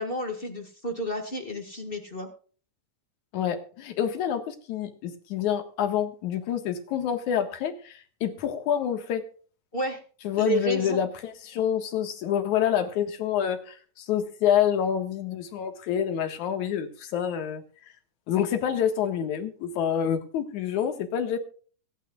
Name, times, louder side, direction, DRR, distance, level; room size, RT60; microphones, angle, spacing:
voice 1, 0.0-2.3 9.7-10.0 10.4-11.0, left 1 dB, 25° left, 5 dB, 1.3 m, -30 dB
voice 2, 3.3-9.2 10.2-17.6 18.3-21.4, left 9 dB, 70° left, 6 dB, 2.9 m, -27 dB
24.0 x 9.2 x 2.4 m, 0.41 s
omnidirectional pair, 3.6 m